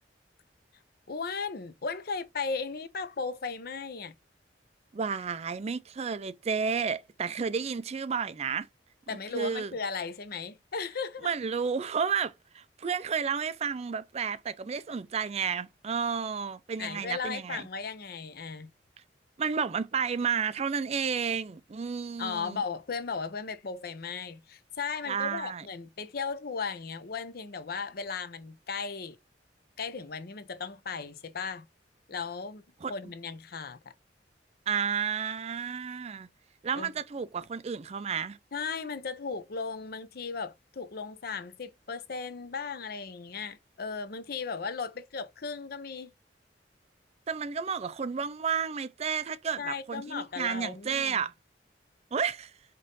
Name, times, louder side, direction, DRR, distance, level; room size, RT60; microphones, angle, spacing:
voice 1, 1.1-4.1 9.1-11.3 16.8-18.7 22.2-29.2 29.8-31.7 32.1-32.6 32.9-33.9 36.7-36.9 38.5-46.1 49.6-51.2, left 5 dB, 60° left, 0.7 m, -36 dB
voice 2, 4.9-8.7 9.3-9.7 11.2-17.6 19.4-22.6 25.1-25.6 32.8-32.9 34.7-36.3 36.6-38.4 47.3-51.3 52.1-52.5, right 6 dB, 35° right, 0.4 m, -31 dB
5.3 x 2.6 x 3.8 m
head